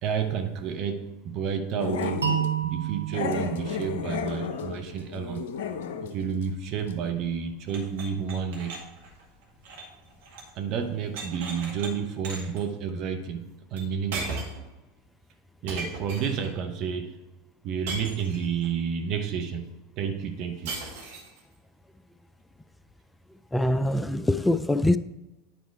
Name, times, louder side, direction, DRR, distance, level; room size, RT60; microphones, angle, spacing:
voice 1, 0.0-2.3 2.6-5.5 6.0-8.7 10.5-14.4 15.6-17.2 17.6-20.8, right 7 dB, 50° right, 0.8 m, -30 dB
Growling, 1.8-2.5 3.1-6.2 6.4-6.6 6.9-7.0, left 7 dB, 65° left, 0.6 m, -33 dB
sound 1, 2.2-5.1, right 9 dB, 90° right, 0.8 m, -31 dB
sound 2, 7.7-10.6 10.8-11.9 12.2-12.6 13.8-13.9 14.1-14.7 15.7-16.5 17.9-18.7 20.6-21.4, right 3 dB, 65° right, 1.8 m, -37 dB
voice 2, 23.5-25.0, left 1 dB, 10° left, 0.4 m, -23 dB
9.3 x 4.5 x 4.6 m
hypercardioid pair, 85°, 0 cm